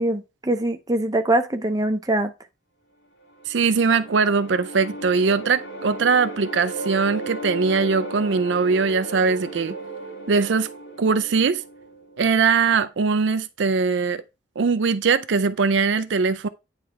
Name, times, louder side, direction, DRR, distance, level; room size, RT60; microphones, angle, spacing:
voice 1, 0.0-2.3, right 1 dB, 20° right, 0.7 m, -23 dB
sound 1, 3.2-12.4, right 2 dB, 75° left, 1.7 m, -35 dB
voice 2, 3.5-9.8 10.3-10.7 11.0-11.6 12.2-14.2 14.6-16.5, right 5 dB, 70° right, 0.5 m, -21 dB
9.5 x 3.4 x 4.6 m
head